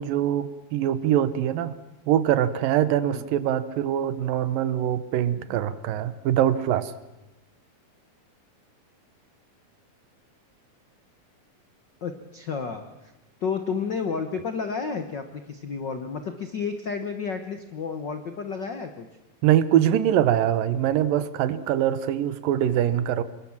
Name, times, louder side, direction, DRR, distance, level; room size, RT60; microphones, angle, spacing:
voice 1, 0.0-1.7 2.1-6.9 19.4-23.2, right 11 dB, 80° right, 14 dB, 2.7 m, -23 dB
voice 2, 12.0-12.8 13.4-19.1, left 5 dB, 75° left, 7 dB, 1.0 m, -31 dB
25.5 x 21.5 x 7.3 m, 0.99 s
omnidirectional pair, 4.0 m